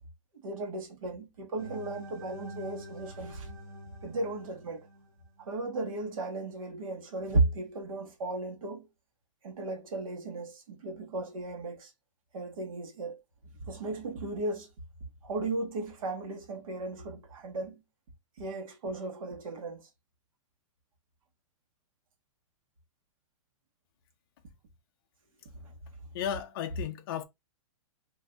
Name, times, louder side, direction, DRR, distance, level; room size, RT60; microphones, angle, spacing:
voice 1, 0.4-3.5 4.0-4.9 5.4-8.9 9.4-11.9 12.3-13.2 13.7-14.7 15.2-17.8 18.4-19.9 25.6-25.7, right 2 dB, 80° right, 1.1 m, -35 dB
sound 1, 1.6-5.6, equal, 15° right, 0.9 m, -46 dB
voice 2, 26.1-27.2, left 9 dB, 45° left, 0.4 m, -34 dB
2.6 x 2.2 x 3.6 m
hypercardioid pair, 170°, 17 cm